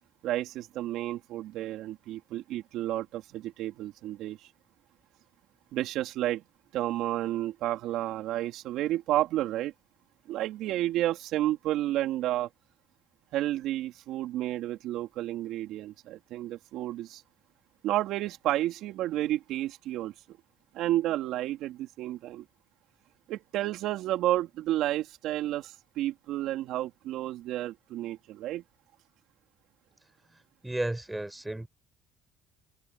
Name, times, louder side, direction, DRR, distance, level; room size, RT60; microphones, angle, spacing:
voice 1, 0.2-4.5 5.7-6.4 6.7-9.7 10.3-12.5 13.3-17.2 17.8-20.1 20.7-22.4 23.3-28.6, right 14 dB, 70° right, 3.4 m, -31 dB
voice 2, 30.6-31.7, right 1 dB, 10° right, 6.2 m, -33 dB
supercardioid pair, 85°, 0 cm